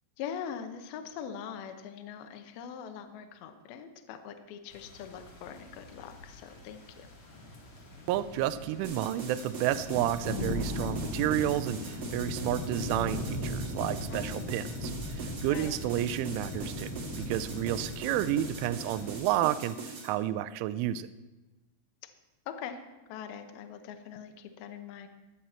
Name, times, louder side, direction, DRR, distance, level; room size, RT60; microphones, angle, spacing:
voice 1, 0.2-7.1 14.1-14.5 15.5-15.7 22.5-22.8 23.1-25.1, left 8 dB, 75° left, 6 dB, 2.2 m, -42 dB
sound 1, 4.7-19.2, left 2 dB, 45° left, 2.5 m, -39 dB
voice 2, 8.1-16.9 17.2-21.1, right 12 dB, 85° right, 12 dB, 2.9 m, -31 dB
sound 2, 8.8-20.1, right 4 dB, 50° right, 1.9 m, -42 dB
22.0 x 7.6 x 4.4 m, 1.1 s
omnidirectional pair, 5.7 m